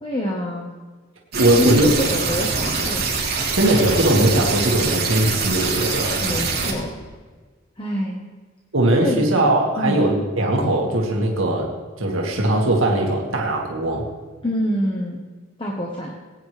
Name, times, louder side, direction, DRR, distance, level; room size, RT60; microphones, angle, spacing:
voice 1, 0.0-0.7 1.5-3.1 6.2-7.0 7.8-8.2 9.0-9.2 9.8-10.0 14.4-15.2 15.6-16.2, left 1 dB, 25° left, -1 dB, 1.3 m, -26 dB
sound 1, 1.3-6.7, right 4 dB, 50° right, 3.5 m, -24 dB
voice 2, 1.3-1.9 3.6-6.1 8.7-11.7 12.0-14.0, right 1 dB, 85° right, -1 dB, 2.0 m, -19 dB
19.0 x 9.3 x 3.4 m, 1.4 s
head